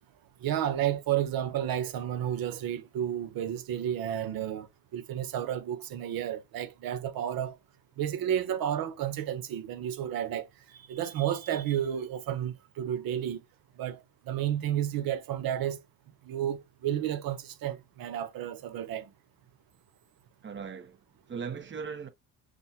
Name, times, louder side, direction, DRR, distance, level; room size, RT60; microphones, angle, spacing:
voice 1, 0.4-4.7 4.9-7.5 8.0-10.5 10.9-13.4 13.8-14.0 14.3-15.8 16.3-19.1, right 10 dB, 60° right, 0.9 m, -31 dB
voice 2, 20.4-22.1, right 6 dB, 30° right, 1.0 m, -39 dB
6.2 x 2.3 x 2.8 m
supercardioid pair, 95°, 39 cm